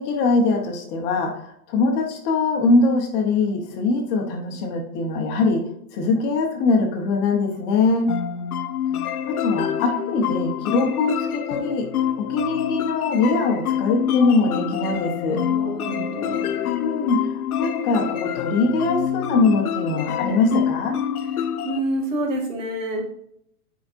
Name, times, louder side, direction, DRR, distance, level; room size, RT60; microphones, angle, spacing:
voice 1, 0.0-8.2 9.3-11.9 12.2-15.4 16.3-16.4 16.8-21.0, left 3 dB, 25° left, 3 dB, 1.0 m, -22 dB
sound 1, 8.1-21.8, left 9 dB, 75° left, 0.8 m, -26 dB
voice 2, 15.3-16.7 21.6-23.1, right 1 dB, 55° right, 0 dB, 2.6 m, -28 dB
8.7 x 5.1 x 2.6 m, 0.71 s
hypercardioid pair, 155°, 45 cm